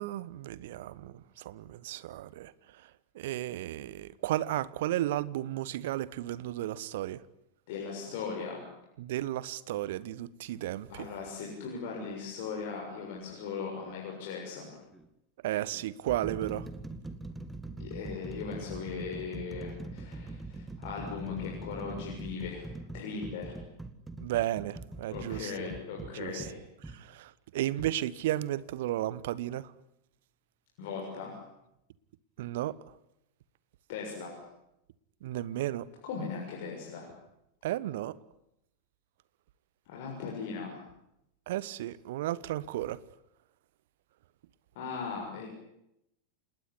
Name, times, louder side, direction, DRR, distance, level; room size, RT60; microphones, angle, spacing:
voice 1, 0.0-2.5 3.1-7.2 9.0-11.1 15.4-16.7 24.2-25.7 26.1-26.5 26.9-29.7 32.4-32.8 35.2-35.9 37.6-38.2 41.5-43.0, right 14 dB, 55° right, 1.1 m, -34 dB
voice 2, 7.7-8.7 10.9-14.7 17.8-23.6 25.1-26.6 26.9-27.0 30.8-31.4 33.9-34.4 36.0-37.1 39.8-40.8 44.7-45.5, left 5 dB, 50° left, 6.8 m, -38 dB
sound 1, 13.8-14.0 14.9-15.1 15.7-27.0 27.8-28.0, right 2 dB, 10° right, 2.2 m, -43 dB
27.5 x 20.0 x 10.0 m
figure-of-eight pair, 90°, 0 cm